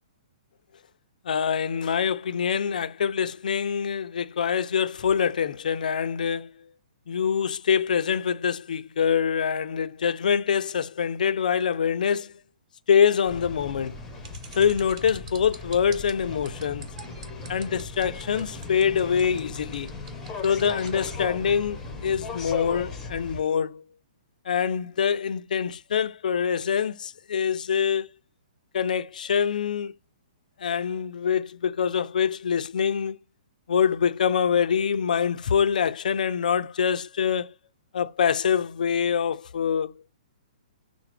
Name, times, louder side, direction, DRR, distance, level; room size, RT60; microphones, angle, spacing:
voice 1, 1.3-6.5 7.1-12.3 12.9-14.0 14.6-16.9 17.5-19.9 20.4-23.8 24.5-28.1 28.7-29.9 30.6-33.2 33.7-37.5 37.9-39.9, left 7 dB, 75° left, 0.3 m, -25 dB
sound 1, 13.3-23.4, left 4 dB, 10° left, 0.8 m, -38 dB
sound 2, 14.2-21.1, right 5 dB, 50° right, 1.1 m, -46 dB
5.7 x 2.0 x 3.2 m
hypercardioid pair, 140°, 4 cm